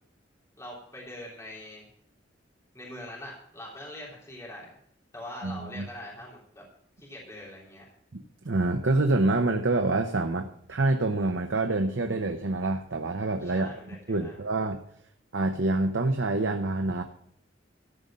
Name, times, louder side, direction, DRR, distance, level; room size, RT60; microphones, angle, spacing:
voice 1, 0.6-1.9 2.7-4.7 5.1-6.6 7.0-7.9 13.4-14.4, left 1 dB, 15° left, -5 dB, 3.3 m, -43 dB
voice 2, 5.4-5.9 8.1-13.7 14.1-14.8 15.3-17.0, right 2 dB, 80° right, 5 dB, 0.9 m, -26 dB
13.5 x 5.3 x 8.6 m, 0.68 s
head